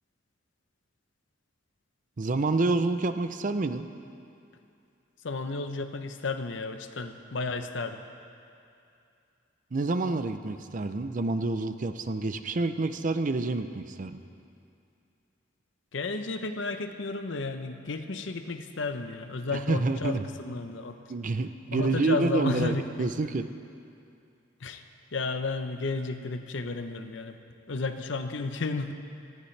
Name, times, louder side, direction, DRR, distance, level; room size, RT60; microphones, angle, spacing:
voice 1, 2.2-3.8 9.7-14.2 19.5-20.3 21.1-23.5, right 3 dB, 45° right, 10 dB, 0.5 m, -28 dB
voice 2, 5.2-8.0 15.9-21.0 21.7-23.1 24.6-24.8 25.1-27.4 27.7-28.9, left 3 dB, 70° left, 8 dB, 0.8 m, -32 dB
18.5 x 13.5 x 3.3 m, 2.6 s
head